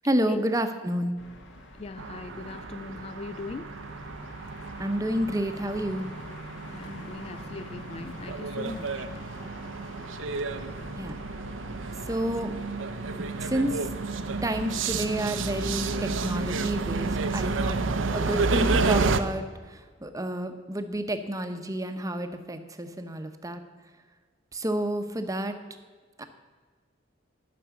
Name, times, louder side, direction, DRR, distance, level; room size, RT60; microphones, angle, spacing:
voice 1, 0.0-1.2 4.8-6.1 11.0-11.2 12.1-12.5 13.4-13.9 14.4-17.8 18.1-23.6 24.5-25.5 26.2-26.3, right 1 dB, 15° right, 0.7 m, -30 dB
sound 1, 1.2-16.6, left 1 dB, 70° left, 1.6 m, -46 dB
voice 2, 1.8-3.7 6.7-9.1, left 4 dB, 30° left, 0.3 m, -39 dB
sound 2, 2.0-19.2, right 3 dB, 80° right, 0.6 m, -31 dB
11.0 x 6.1 x 7.0 m
head